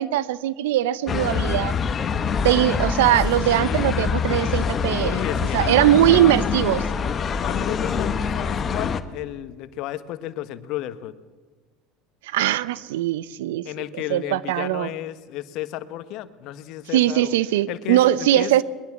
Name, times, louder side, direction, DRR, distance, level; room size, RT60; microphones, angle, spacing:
voice 1, 0.0-1.7 2.4-5.2 5.5-6.8 12.3-13.7 14.1-14.9 16.9-18.6, right 13 dB, 80° right, 18 dB, 0.7 m, -20 dB
sound 1, 1.1-9.0, left 6 dB, 35° left, 1.4 m, -25 dB
voice 2, 3.0-3.9 5.0-6.3 7.4-11.1 13.6-17.4 17.7-18.5, left 13 dB, 60° left, 12 dB, 1.4 m, -33 dB
21.5 x 21.0 x 7.5 m, 1.4 s
hypercardioid pair, 80°, 0 cm